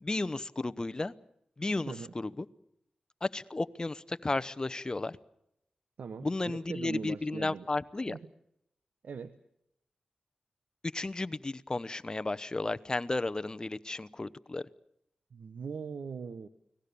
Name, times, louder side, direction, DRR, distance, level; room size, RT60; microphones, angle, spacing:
voice 1, 0.0-1.1 1.6-2.5 3.2-5.2 6.2-8.2 10.9-14.6, left 2 dB, 30° left, 14 dB, 0.9 m, -33 dB
voice 2, 6.0-7.7 8.1-8.2 9.0-9.3 15.3-16.5, right 5 dB, 85° right, 12 dB, 1.0 m, -40 dB
29.5 x 19.0 x 6.9 m, 0.79 s
wide cardioid pair, 85°, 3 cm